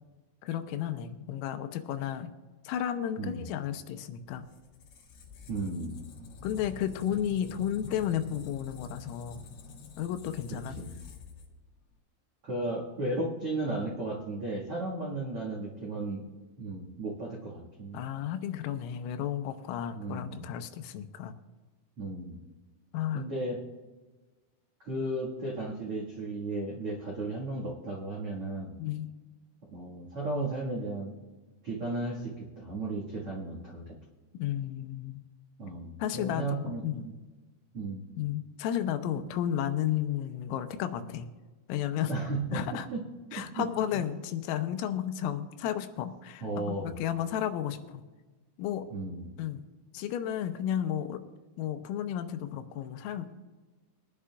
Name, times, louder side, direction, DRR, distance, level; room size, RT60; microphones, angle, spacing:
voice 1, 0.4-2.3 2.6-4.4 6.4-9.4 10.0-10.8 17.9-21.3 22.9-23.2 28.8-29.1 34.3-35.2 36.0-37.1 38.2-41.3 41.7-42.1 42.5-42.9 43.3-48.0 48.6-48.9 49.4-49.6 49.9-51.2 51.6-53.4, left 10 dB, 85° left, 8 dB, 3.4 m, -33 dB
Squeak, 4.2-11.9, left 4 dB, 60° left, 3.0 m, -47 dB
voice 2, 5.5-6.0 10.7-10.9 12.4-16.2 16.6-18.0 20.0-20.4 22.0-22.4 23.1-23.6 24.8-28.7 29.7-31.1 31.6-33.9 35.6-37.1 37.7-38.0 42.0-43.0 43.6-44.0 46.4-46.9 48.9-49.3, right 2 dB, 75° right, -3 dB, 1.2 m, -35 dB
22.5 x 11.0 x 2.4 m, 1.3 s
omnidirectional pair, 6.0 m